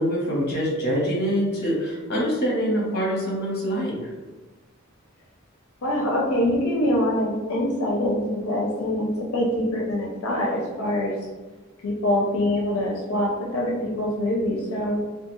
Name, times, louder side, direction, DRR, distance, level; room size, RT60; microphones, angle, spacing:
voice 1, 0.0-4.1, equal, 50° left, -3 dB, 0.9 m, -25 dB
voice 2, 5.8-11.1 11.8-15.1, left 1 dB, 85° left, -3 dB, 0.5 m, -24 dB
2.3 x 2.3 x 3.0 m, 1.3 s
head